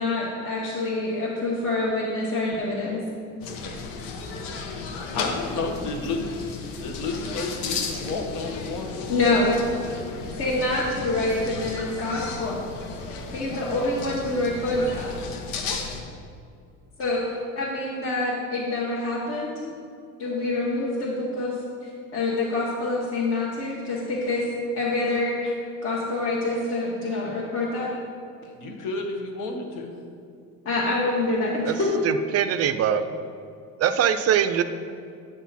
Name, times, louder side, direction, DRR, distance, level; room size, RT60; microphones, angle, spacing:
voice 1, 0.0-3.0 9.1-9.5 10.4-12.6 13.3-15.1 17.0-17.2 17.6-19.5 20.2-21.5 21.8-24.5 24.8-25.5 25.8-27.9 30.6-32.0, left 2 dB, 45° left, -6 dB, 1.4 m, -26 dB
sound 1, 3.4-16.0, left 4 dB, 90° left, 1.0 m, -34 dB
voice 2, 4.9-6.5 6.8-8.9 14.4-14.5 28.5-29.9, left 3 dB, 65° left, 3 dB, 1.4 m, -31 dB
voice 3, 32.0-33.0 33.8-34.6, right 9 dB, 45° right, 11 dB, 0.5 m, -22 dB
8.8 x 6.2 x 4.1 m, 2.4 s
cardioid pair, 125°, 33 cm